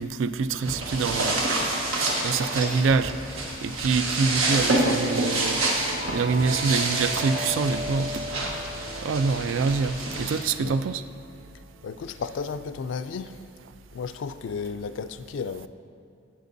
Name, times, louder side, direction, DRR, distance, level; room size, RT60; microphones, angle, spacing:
voice 1, 0.0-1.4 2.2-3.1 3.6-5.6 6.1-8.2 9.0-11.0, right 4 dB, 70° right, 0.3 m, -25 dB
sound 1, 0.6-10.4, right 2 dB, 90° right, 1.3 m, -28 dB
sound 2, 5.7-12.2, equal, 30° right, 0.6 m, -38 dB
voice 2, 11.8-13.4 13.9-15.7, left 5 dB, 65° left, 0.3 m, -33 dB
12.0 x 9.0 x 2.6 m
head